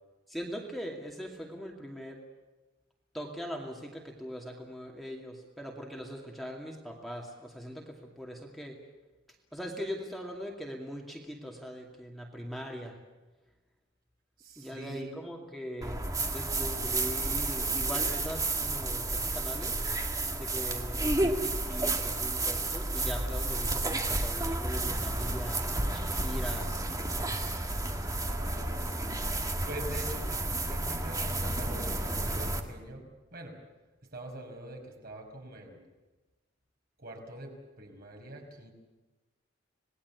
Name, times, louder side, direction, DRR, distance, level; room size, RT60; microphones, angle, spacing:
voice 1, 0.3-2.2 3.1-8.8 9.5-13.0 14.6-19.8 20.3-26.7, equal, ahead, 0 dB, 2.5 m, -41 dB
voice 2, 14.4-15.1 28.0-29.3 29.7-33.6 34.1-35.8 37.0-38.7, right 1 dB, 50° right, 2 dB, 5.3 m, -44 dB
sound 1, 15.8-32.6, right 2 dB, 20° right, 2.0 m, -31 dB
27.0 x 19.5 x 8.4 m, 1.1 s
head